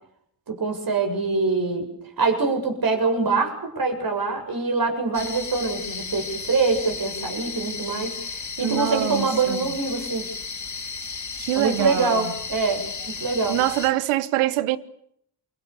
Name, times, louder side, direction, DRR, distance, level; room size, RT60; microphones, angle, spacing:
voice 1, 0.5-1.9 2.2-10.3 11.5-13.6, right 4 dB, 45° right, 7.9 m, -24 dB
sound 1, 5.1-13.9, left 5 dB, 35° left, 4.5 m, -34 dB
voice 2, 8.6-9.7 11.4-12.3 13.5-14.8, right 16 dB, 80° right, 1.3 m, -25 dB
28.0 x 24.0 x 6.9 m
hypercardioid pair, 50°, 49 cm